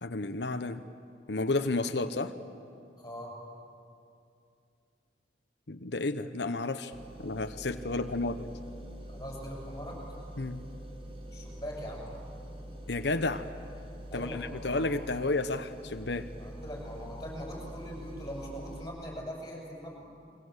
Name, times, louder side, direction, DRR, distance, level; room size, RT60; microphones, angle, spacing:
voice 1, 0.0-0.8 1.3-2.3 5.7-6.9 7.2-8.5 10.4-10.6 12.9-13.5 14.1-16.3, left 2 dB, 75° left, 8 dB, 1.0 m, -31 dB
voice 2, 3.0-3.3 9.1-10.2 11.3-12.1 14.1-14.8 16.4-20.1, equal, 20° left, -2 dB, 7.5 m, -41 dB
sound 1, 6.9-18.8, equal, 30° right, 2.1 m, -45 dB
29.5 x 23.0 x 8.2 m, 2.5 s
head